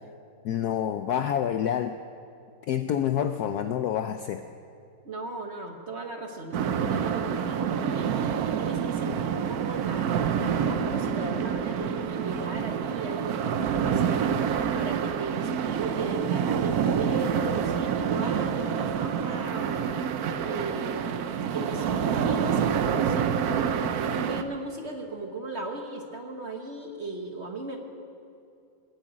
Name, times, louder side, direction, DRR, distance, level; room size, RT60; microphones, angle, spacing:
voice 1, 0.4-1.9 2.7-4.4, left 9 dB, 75° left, 8 dB, 0.9 m, -27 dB
voice 2, 5.0-8.2 8.6-14.3 14.7-19.9 20.4-27.8, right 2 dB, 40° right, 3 dB, 1.2 m, -36 dB
strong waves, 6.5-24.4, right 7 dB, 65° right, 1.0 m, -27 dB
19.5 x 7.1 x 9.0 m, 2.5 s
omnidirectional pair, 2.1 m